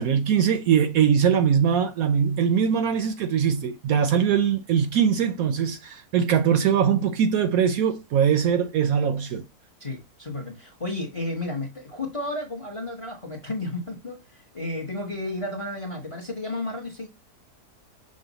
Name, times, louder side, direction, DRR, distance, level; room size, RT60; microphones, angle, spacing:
voice 1, 0.0-9.4, right 7 dB, 70° right, 0.9 m, -22 dB
voice 2, 9.8-17.1, left 2 dB, 25° left, 0.7 m, -32 dB
6.3 x 2.2 x 3.9 m
omnidirectional pair, 1.7 m